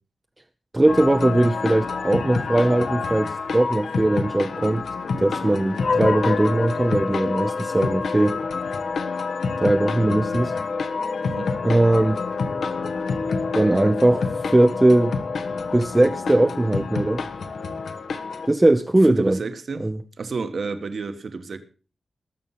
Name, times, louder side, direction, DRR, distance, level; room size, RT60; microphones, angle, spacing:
voice 1, 0.7-4.8 5.2-8.4 9.6-10.5 11.6-12.2 13.5-15.2 15.7-17.2 18.5-19.4 19.8-20.0, right 1 dB, 15° right, 0.6 m, -20 dB
sound 1, 0.9-18.5, left 4 dB, 80° left, 1.4 m, -29 dB
sound 2, 5.8-16.3, left 4 dB, 60° left, 1.1 m, -30 dB
voice 2, 11.2-11.5 19.1-19.9 20.2-21.6, right 4 dB, 55° right, 1.4 m, -30 dB
19.0 x 7.0 x 5.8 m
wide cardioid pair, 155°, 0 cm